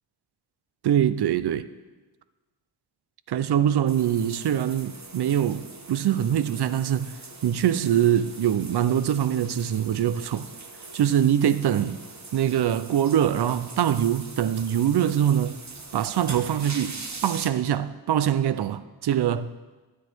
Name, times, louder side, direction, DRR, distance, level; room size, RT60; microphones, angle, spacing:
voice 1, 0.8-1.7 3.3-7.1 7.4-10.5 10.9-12.0 12.3-15.6 15.9-19.6, right 10 dB, 75° right, 0.6 m, -23 dB
sound 1, 3.9-17.5, right 3 dB, 45° right, 1.1 m, -42 dB
12.0 x 10.0 x 4.5 m
wide cardioid pair, 85°, 40 cm